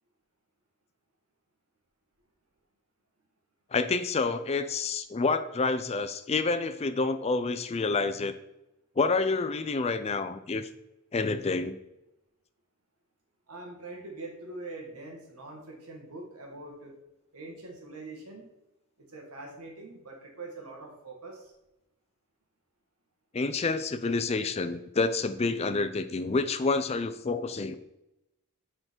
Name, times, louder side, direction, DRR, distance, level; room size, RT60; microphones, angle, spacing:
voice 1, 3.7-8.3 9.0-10.7 11.1-11.8 23.3-27.8, left 3 dB, 30° left, 11 dB, 0.4 m, -28 dB
voice 2, 13.5-17.0 17.3-18.5 19.0-21.5, right 2 dB, 85° right, 1 dB, 1.5 m, -43 dB
7.8 x 3.8 x 4.5 m, 0.91 s
head